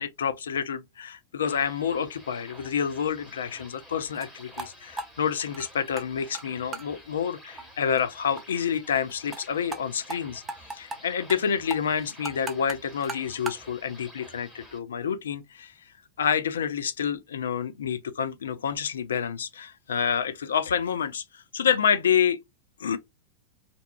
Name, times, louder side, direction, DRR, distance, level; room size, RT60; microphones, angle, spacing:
voice 1, 0.0-10.4 10.7-15.7 16.2-22.4 22.8-23.0, left 7 dB, 65° left, 0.3 m, -28 dB
sound 1, 1.4-14.8, equal, 10° left, 1.0 m, -50 dB
sound 2, 4.1-4.3 4.6-4.7 5.0-6.0 6.3-6.4 6.7-6.9 7.2-7.3 7.6-7.7 8.0-8.1 8.4-8.5 8.7-8.8 9.1-9.4 9.7-9.8 10.1-10.2 10.5-11.0 11.3-11.4 11.7-13.6, right 3 dB, 20° right, 0.5 m, -36 dB
2.6 x 2.2 x 2.2 m
figure-of-eight pair, 90°, 0 cm